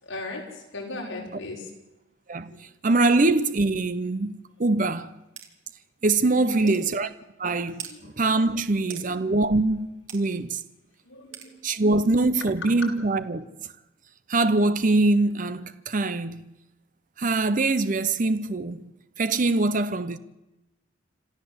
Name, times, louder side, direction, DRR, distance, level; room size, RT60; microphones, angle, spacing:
voice 1, 0.0-1.7 2.5-2.6 4.7-4.9 6.3-6.7 7.8-8.1 8.8-9.1 11.0-12.1, left 2 dB, 75° left, 5.9 m, -39 dB
voice 2, 2.3-5.1 6.0-7.1 7.4-7.9 8.2-10.6 11.6-13.4 14.3-16.5 17.2-18.8 19.2-20.2, right 2 dB, 40° right, 0.7 m, -23 dB
sound 1, 5.4-5.5 6.0-6.1 6.7-6.8 7.8-7.9 8.9-9.1 10.1-10.2 11.3-11.5, right 8 dB, 80° right, 2.9 m, -39 dB
26.5 x 14.5 x 7.9 m
head